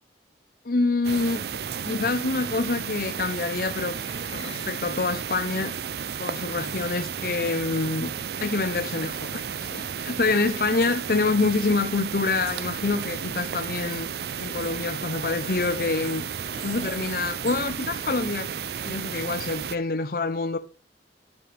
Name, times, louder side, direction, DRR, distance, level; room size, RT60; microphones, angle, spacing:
voice 1, 0.6-1.4 1.9-4.0 4.3-5.8 6.2-8.1 8.4-14.1 14.4-16.3 16.6-18.5 18.9-20.6, left 3 dB, 55° left, 0.7 m, -26 dB
sound 1, 1.0-19.8, right 7 dB, 65° right, 0.5 m, -33 dB
sound 2, 3.9-6.4 7.6-7.7 8.5-10.1 13.3-13.4 13.9-14.0 15.2-17.3, left 2 dB, 30° left, 2.5 m, -47 dB
12.5 x 10.5 x 3.4 m
head